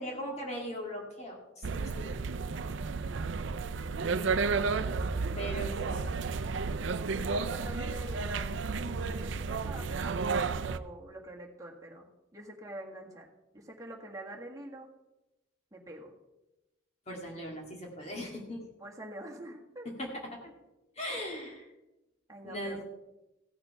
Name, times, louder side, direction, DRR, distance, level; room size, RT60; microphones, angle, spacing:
voice 1, 0.0-2.1 5.4-6.1 17.1-18.6 20.0-20.1 21.0-21.7 22.4-22.8, equal, 35° left, 0 dB, 2.1 m, -39 dB
sound 1, 1.6-10.8, right 4 dB, 70° right, 0.5 m, -32 dB
voice 2, 7.1-13.3 13.5-14.9 15.7-16.1 18.8-19.9 22.3-22.8, right 1 dB, 15° right, -1 dB, 1.7 m, -46 dB
15.5 x 6.7 x 5.7 m, 0.99 s
head